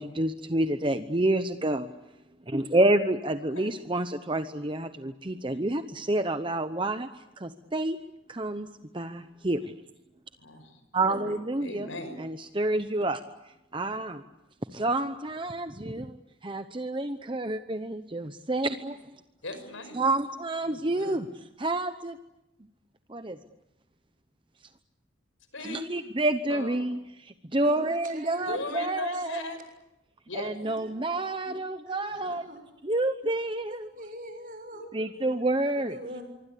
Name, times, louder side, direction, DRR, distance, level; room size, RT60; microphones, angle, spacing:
voice 1, 0.0-1.9 2.5-7.1 7.4-8.0 8.3-8.7 8.9-9.7 10.9-11.9 12.2-13.2 13.7-14.2 14.7-16.2 16.4-19.0 19.9-21.2 21.6-22.2 23.1-23.4 25.6-29.4 30.3-32.4 32.8-33.9 34.9-36.0, right 2 dB, 25° right, 9 dB, 0.9 m, -28 dB
voice 2, 3.4-3.8 10.4-12.2 19.4-20.0 20.6-21.2 25.5-25.9 26.5-26.9 28.5-29.6 30.3-30.6 32.1-32.4 34.7-35.4, left 2 dB, 80° left, 10 dB, 5.9 m, -39 dB
voice 3, 27.6-29.1 30.6-31.5 31.9-32.6 33.7-34.8 35.7-36.2, right 1 dB, 45° right, 6 dB, 6.7 m, -44 dB
25.5 x 24.5 x 8.5 m, 0.89 s
head